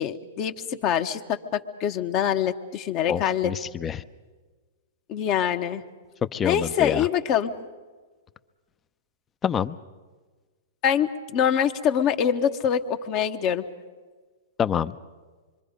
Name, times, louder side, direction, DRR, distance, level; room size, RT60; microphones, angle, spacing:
voice 1, 0.0-3.5 5.1-5.8 6.4-7.5 10.8-13.6, left 9 dB, 40° left, 6 dB, 1.2 m, -24 dB
voice 2, 3.1-4.0 6.3-7.1 9.4-9.8 14.6-15.0, left 8 dB, 20° left, 13 dB, 0.7 m, -27 dB
26.0 x 23.5 x 5.2 m, 1.4 s
hypercardioid pair, 120°, 0 cm